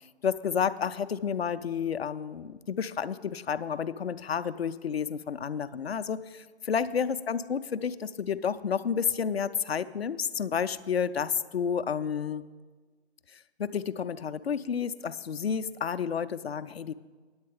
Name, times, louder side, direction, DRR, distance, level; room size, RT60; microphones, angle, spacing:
voice 1, 0.2-12.4 13.6-16.9, left 7 dB, 65° left, 12 dB, 0.5 m, -30 dB
8.8 x 8.7 x 5.3 m, 1.4 s
figure-of-eight pair, 140°, 34 cm